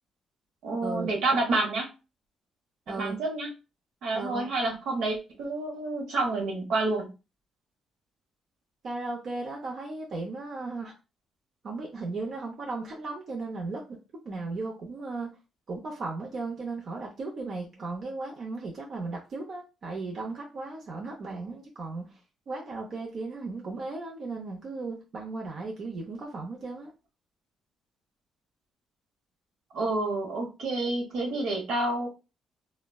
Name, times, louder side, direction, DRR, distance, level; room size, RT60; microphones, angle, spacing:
voice 1, 0.6-1.9 2.9-3.5 4.0-7.1 29.7-32.1, right 2 dB, 80° right, 0 dB, 0.9 m, -29 dB
voice 2, 4.1-4.5 8.8-10.9 11.6-14.0 14.2-15.3 15.7-22.2 22.5-26.9, right 3 dB, 55° right, -1 dB, 0.6 m, -36 dB
3.2 x 2.1 x 2.2 m, 0.29 s
cardioid pair, 90°, 0 cm